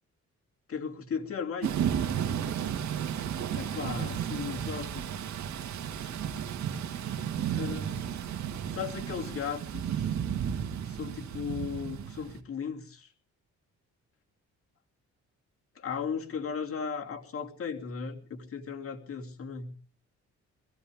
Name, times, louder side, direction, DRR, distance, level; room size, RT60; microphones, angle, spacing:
voice 1, 0.7-1.8 3.5-5.0 7.5-8.1 8.7-10.1 10.8-13.1 15.7-19.7, left 6 dB, 45° left, 2 dB, 2.9 m, -36 dB
Thunder / Rain, 1.6-12.4, right 9 dB, 70° right, 2.0 m, -33 dB
21.5 x 16.0 x 3.6 m, 0.38 s
cardioid pair, 90°, 30 cm